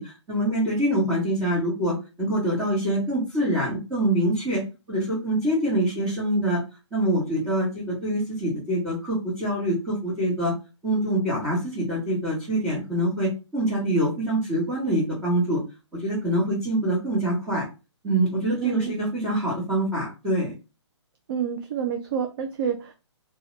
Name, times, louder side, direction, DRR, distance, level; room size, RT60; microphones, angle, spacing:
voice 1, 0.0-4.6 4.9-6.6 6.9-10.5 10.8-15.6 15.9-17.7 18.0-20.5, right 1 dB, 15° right, -8 dB, 1.2 m, -25 dB
voice 2, 18.6-19.0 21.3-22.9, right 8 dB, 50° right, 5 dB, 0.4 m, -28 dB
2.7 x 2.3 x 3.1 m, 0.30 s
hypercardioid pair, 145°, 15 cm